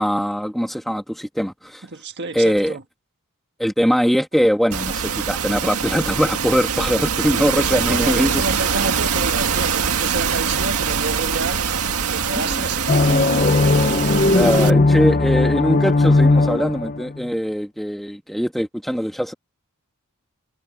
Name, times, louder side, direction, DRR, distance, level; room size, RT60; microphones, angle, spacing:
voice 1, 0.0-1.8 2.3-2.8 3.6-8.4 12.3-12.7 14.3-19.3, equal, ahead, 2.4 m, -21 dB
voice 2, 1.9-2.8 7.3-11.6 11.9-13.2, right 3 dB, 50° right, 1.6 m, -29 dB
sound 1, 4.7-14.7, right 6 dB, 80° right, 1.8 m, -23 dB
sound 2, 12.9-17.2, left 2 dB, 40° left, 0.8 m, -17 dB
head